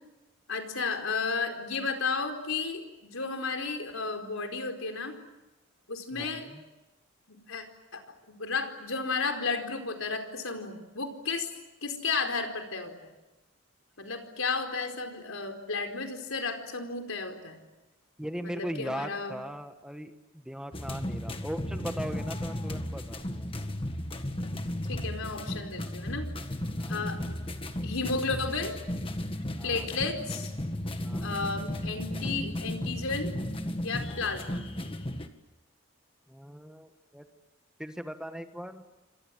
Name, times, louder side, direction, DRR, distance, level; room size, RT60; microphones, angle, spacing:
voice 1, 0.5-5.2 5.9-6.5 7.3-7.6 7.9-8.0 8.3-11.5 11.8-13.1 14.0-17.6 18.4-19.3 24.9-26.3 26.9-27.4 27.8-28.8 29.6-30.5 31.2-33.3 33.8-34.6, left 4 dB, 80° left, 5 dB, 4.6 m, -33 dB
voice 2, 6.1-6.6 18.2-23.5 26.8-27.0 29.6-29.8 31.0-31.3 36.3-37.3 37.8-38.8, equal, 5° right, 7 dB, 1.4 m, -39 dB
sound 1, 20.7-35.3, left 1 dB, 25° left, 1.7 m, -35 dB
29.5 x 26.0 x 7.8 m, 1.0 s
head